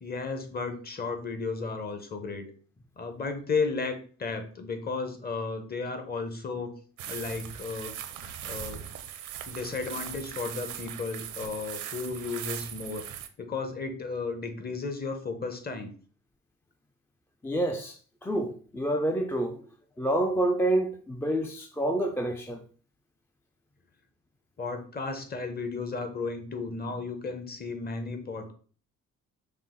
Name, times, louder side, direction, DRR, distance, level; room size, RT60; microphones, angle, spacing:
voice 1, 0.0-2.4 3.0-6.7 7.0-7.9 8.4-8.9 9.5-13.1 13.4-15.9 24.6-28.5, left 4 dB, 30° left, 0.9 m, -34 dB
sound 1, 7.0-13.3, right 10 dB, 80° right, 0.6 m, -39 dB
voice 2, 17.4-19.6 20.0-22.6, right 1 dB, 10° left, 0.4 m, -28 dB
5.3 x 2.0 x 3.7 m
cardioid pair, 90°, 30 cm